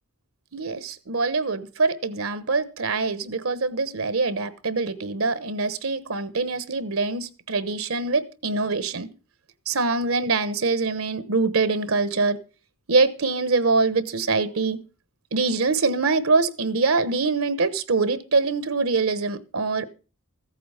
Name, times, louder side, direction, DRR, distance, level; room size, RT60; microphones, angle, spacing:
voice 1, 0.5-9.1 9.7-12.4 12.9-14.8 15.3-19.9, right 3 dB, 80° right, 1.1 m, -24 dB
15.0 x 8.5 x 5.6 m
head